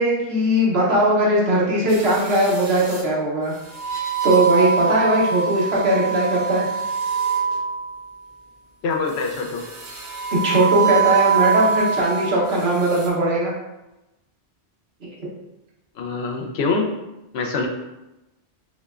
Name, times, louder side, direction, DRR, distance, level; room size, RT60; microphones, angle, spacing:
voice 1, 0.0-3.5 4.2-6.7 10.3-13.5 15.2-15.3, right 1 dB, 75° right, -4 dB, 1.2 m, -19 dB
sound 1, 1.9-3.0 3.7-8.0 9.2-12.4 12.8-13.1, right 6 dB, 45° right, 0.7 m, -24 dB
voice 2, 8.8-9.7 16.0-16.9 17.3-17.7, left 4 dB, 80° left, 2 dB, 0.8 m, -24 dB
5.4 x 2.2 x 2.4 m, 0.98 s
omnidirectional pair, 1.1 m